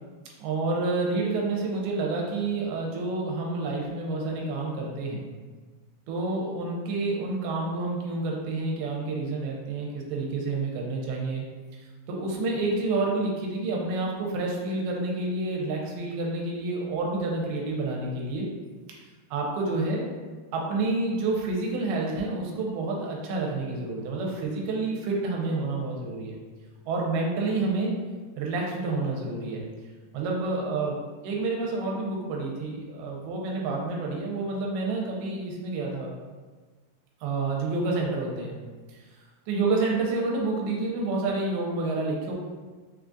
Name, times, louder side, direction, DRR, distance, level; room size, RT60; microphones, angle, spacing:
voice 1, 0.4-5.2 6.1-11.5 11.7-18.5 19.3-20.0 20.5-26.4 26.9-28.0 28.4-29.6 30.1-36.1 37.2-38.6 38.9-39.0 39.5-42.3, right 3 dB, 85° right, -1 dB, 2.6 m, -29 dB
6.3 x 2.5 x 2.3 m, 1.4 s
omnidirectional pair, 4.5 m